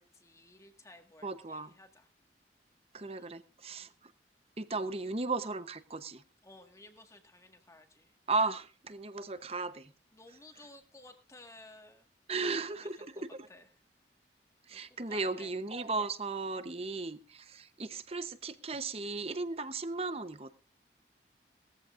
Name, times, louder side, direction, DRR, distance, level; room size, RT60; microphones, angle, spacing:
voice 1, 0.0-2.1 3.1-3.3 3.8-3.9 6.4-8.2 10.1-12.1 12.7-13.7 14.7-15.5 15.9-16.1, left 2 dB, 20° left, 1.7 m, -56 dB
voice 2, 1.2-1.7 2.9-3.9 4.6-6.2 8.3-9.9 12.3-13.3 14.7-20.5, right 3 dB, 35° right, 0.8 m, -36 dB
18.5 x 14.5 x 2.5 m
head